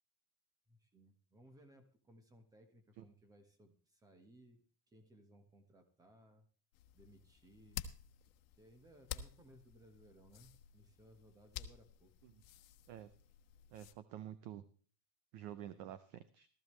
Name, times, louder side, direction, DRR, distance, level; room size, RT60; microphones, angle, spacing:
voice 1, 0.7-6.5 6.9-7.8 8.6-12.1 15.7-15.9, right 1 dB, 10° right, 7 dB, 1.3 m, -63 dB
sound 1, 6.7-13.9, left 10 dB, 65° left, 1.3 m, -51 dB
voice 2, 13.7-14.6 15.3-16.5, right 11 dB, 30° right, 14 dB, 0.5 m, -49 dB
15.5 x 14.0 x 3.2 m, 0.41 s
supercardioid pair, 180°, 44 cm